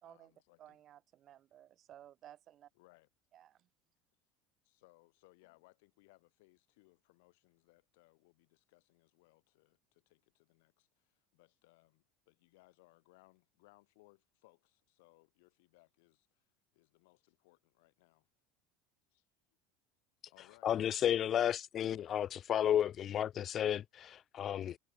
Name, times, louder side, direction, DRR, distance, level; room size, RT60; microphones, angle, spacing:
voice 1, 0.0-0.8 2.7-3.1 4.6-18.3 19.1-19.3 20.2-20.7 21.3-21.4, left 25 dB, 75° left, 5.4 m, -67 dB
voice 2, 0.6-2.7 3.3-3.6, right 11 dB, 35° right, 1.8 m, -57 dB
voice 3, 20.6-24.8, left 10 dB, 35° left, 0.4 m, -32 dB
cardioid pair, 150°, 0 cm